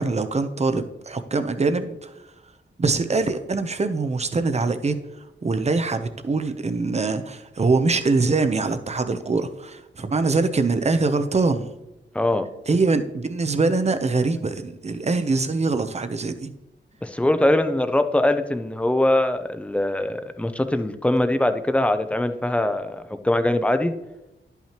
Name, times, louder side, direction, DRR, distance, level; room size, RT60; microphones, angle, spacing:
voice 1, 0.0-2.1 2.8-5.0 5.4-11.7 12.7-16.5, right 3 dB, 35° right, 9 dB, 0.7 m, -23 dB
voice 2, 12.1-12.5 17.0-23.9, left 1 dB, 5° left, 9 dB, 0.6 m, -22 dB
11.0 x 5.7 x 2.9 m, 0.96 s
wide cardioid pair, 95°, 20 cm